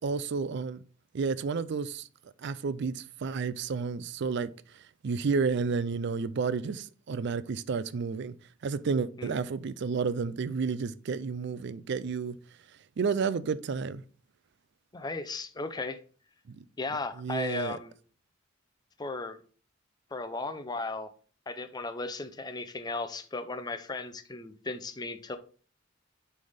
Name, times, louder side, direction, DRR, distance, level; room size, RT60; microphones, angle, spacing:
voice 1, 0.0-0.8 1.1-2.1 2.4-4.5 5.0-8.3 8.6-12.4 13.0-14.0 16.5-16.6 17.2-17.8, right 5 dB, 60° right, 0.4 m, -31 dB
voice 2, 14.9-16.0 16.8-18.0 19.0-19.4 20.1-21.1 21.5-25.4, left 3 dB, 20° left, 0.6 m, -36 dB
9.3 x 3.4 x 3.5 m
head